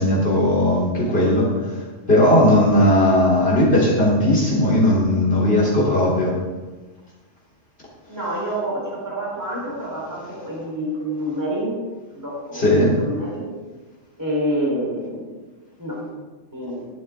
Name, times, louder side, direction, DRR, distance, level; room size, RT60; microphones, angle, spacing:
voice 1, 0.0-1.8 2.1-6.4 12.5-13.0, left 1 dB, 50° left, -6 dB, 3.9 m, -17 dB
voice 2, 8.1-11.7 12.1-13.5 14.2-15.3 15.8-16.2 16.5-16.8, equal, 15° right, -5 dB, 4.3 m, -27 dB
14.0 x 11.5 x 3.7 m, 1.3 s
omnidirectional pair, 1.3 m